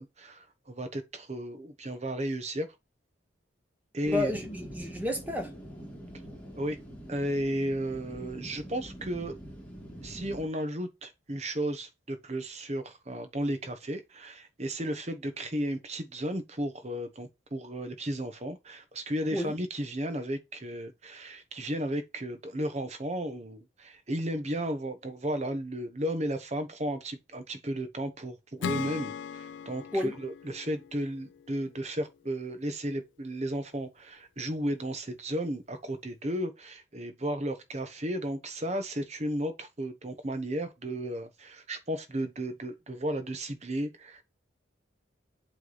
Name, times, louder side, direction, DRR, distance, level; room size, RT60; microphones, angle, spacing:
voice 1, 0.0-2.7 3.9-4.3 6.5-6.8 7.1-9.3 10.0-44.2, right 1 dB, 35° right, 1.0 m, -34 dB
sound 1, 4.0-10.5, equal, 5° left, 1.9 m, -44 dB
voice 2, 4.0-5.5 19.3-19.6 29.9-30.1, left 1 dB, 10° right, 1.3 m, -31 dB
Acoustic guitar / Strum, 28.6-32.1, left 7 dB, 80° left, 0.3 m, -39 dB
8.0 x 3.2 x 4.0 m
head